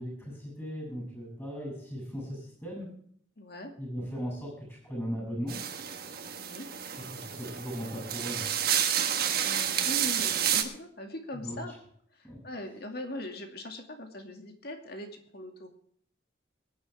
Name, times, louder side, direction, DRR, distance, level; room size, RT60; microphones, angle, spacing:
voice 1, 0.0-2.9 3.8-5.6 7.1-8.5 11.3-11.6 12.2-12.4, equal, 10° left, -2 dB, 7.3 m, -37 dB
voice 2, 3.4-3.7 6.4-6.7 9.4-11.7 12.1-15.7, left 1 dB, 55° left, 4 dB, 2.3 m, -41 dB
sound 1, 5.5-10.6, right 9 dB, 50° right, 1.4 m, -30 dB
23.5 x 10.0 x 3.5 m, 0.63 s
head